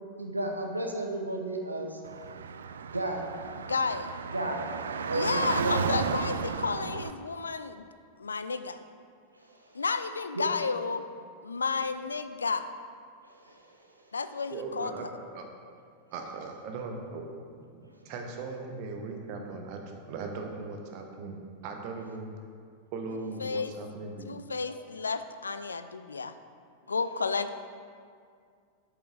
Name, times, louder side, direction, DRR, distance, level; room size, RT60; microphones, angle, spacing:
voice 1, 0.2-2.0 2.8-3.3 4.3-4.7 5.0-6.2 9.5-9.8 10.4-10.5 13.3-13.6, right 2 dB, 85° right, 2 dB, 0.8 m, -33 dB
Car / Traffic noise roadway noise, 2.0-7.1, right 6 dB, 65° right, 0.3 m, -34 dB
voice 2, 3.7-4.2 5.1-7.9 8.2-8.8 9.7-11.0 11.4-12.7 14.1-15.1 23.4-23.7 24.2-26.3 26.9-27.5, left 4 dB, 75° left, 11 dB, 0.3 m, -32 dB
voice 3, 14.5-15.5 16.1-21.4 21.6-22.3 22.9-24.3, right 3 dB, 45° right, 3 dB, 1.0 m, -39 dB
8.1 x 6.2 x 3.9 m, 2.2 s
figure-of-eight pair, 90°, 0 cm